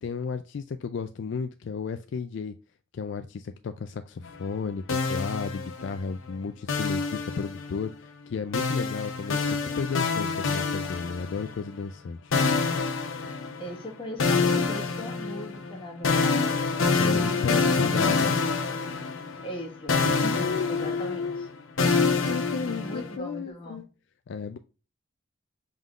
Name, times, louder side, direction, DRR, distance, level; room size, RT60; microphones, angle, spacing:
voice 1, 0.0-2.5 2.9-12.3 17.0-18.4 20.3-21.5 22.2-23.9 24.3-24.6, left 5 dB, 65° left, 0.3 m, -33 dB
sound 1, 4.9-6.1 6.7-7.9 8.5-11.6 12.3-13.8 14.2-19.6 19.9-23.2, left 4 dB, 80° left, 0.8 m, -26 dB
voice 2, 13.6-16.8 17.1-18.4 19.4-21.3 22.8-23.8, equal, 25° left, 1.4 m, -39 dB
5.4 x 3.7 x 2.4 m
head